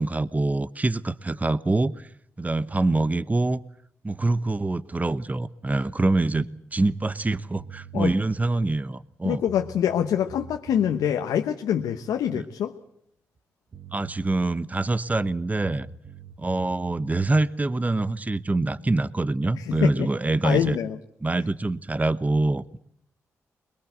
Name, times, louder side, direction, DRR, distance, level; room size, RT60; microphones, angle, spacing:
voice 1, 0.0-2.1 2.4-3.6 4.0-9.4 12.3-12.5 13.9-15.9 16.4-20.8 21.2-22.8, right 2 dB, 25° right, 15 dB, 1.0 m, -25 dB
sound 1, 7.6-8.1 9.1-9.2 9.5-11.1 13.4-13.5 13.7-14.4 15.6-17.4, right 6 dB, 55° right, 1.3 m, -44 dB
voice 2, 9.2-12.7 19.6-20.1 20.4-21.0, left 9 dB, 85° left, 5 dB, 1.1 m, -25 dB
22.0 x 22.0 x 8.1 m, 0.71 s
supercardioid pair, 45°, 6 cm